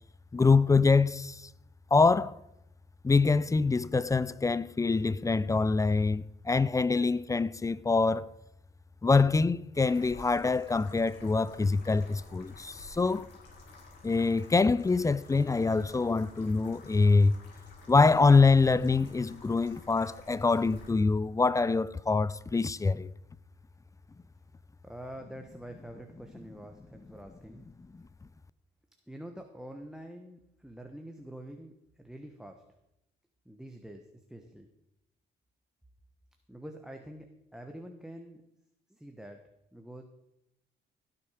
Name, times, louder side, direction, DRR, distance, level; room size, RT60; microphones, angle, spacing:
voice 1, 0.3-1.5 1.9-2.4 3.0-8.3 9.0-13.3 14.0-17.4 17.9-23.1, left 4 dB, 15° left, 0.4 m, -25 dB
sound 1, 9.8-20.9, left 2 dB, 60° left, 4.8 m, -53 dB
voice 2, 24.8-27.6 29.1-32.6 33.4-34.7 36.5-37.3 37.5-38.4 38.9-40.0, right 1 dB, 5° right, 1.2 m, -46 dB
17.0 x 7.2 x 5.0 m
cardioid pair, 90°, 20 cm